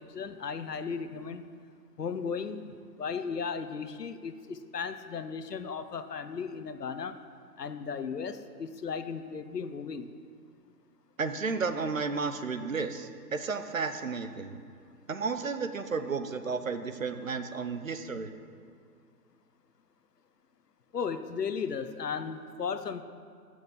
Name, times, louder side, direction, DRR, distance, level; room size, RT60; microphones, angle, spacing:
voice 1, 0.0-1.5 2.0-7.2 7.6-10.1 20.9-23.0, left 6 dB, 75° left, 10 dB, 1.0 m, -36 dB
voice 2, 11.2-14.6 15.1-18.3, right 4 dB, 55° right, 9 dB, 0.8 m, -33 dB
12.5 x 6.5 x 7.3 m, 2.2 s
hypercardioid pair, 180°, 49 cm